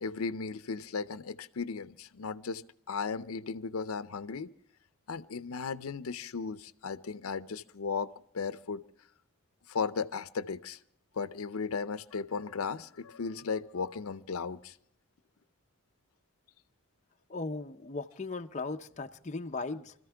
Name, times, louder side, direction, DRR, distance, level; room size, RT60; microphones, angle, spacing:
voice 1, 0.0-4.5 5.1-8.8 9.7-10.8 11.2-14.7, left 5 dB, 85° left, 0.6 m, -36 dB
voice 2, 17.3-19.9, left 3 dB, 35° left, 0.5 m, -37 dB
25.5 x 14.0 x 3.4 m
head